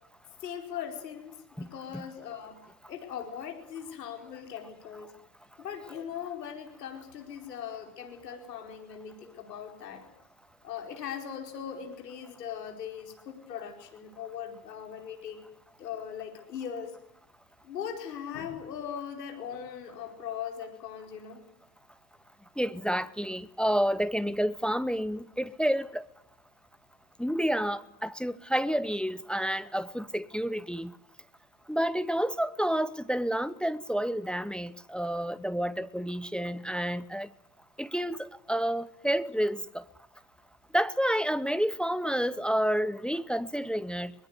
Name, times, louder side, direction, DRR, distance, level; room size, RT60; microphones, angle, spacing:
voice 1, 0.4-2.6 2.9-5.1 5.6-10.0 10.6-15.4 15.8-17.0 17.6-21.4, left 8 dB, 80° left, 4.8 m, -40 dB
voice 2, 22.6-26.1 27.2-30.9 31.7-37.3 37.8-39.8 40.7-44.1, equal, ahead, 0.8 m, -29 dB
23.0 x 21.5 x 8.1 m
hypercardioid pair, 95°, 48 cm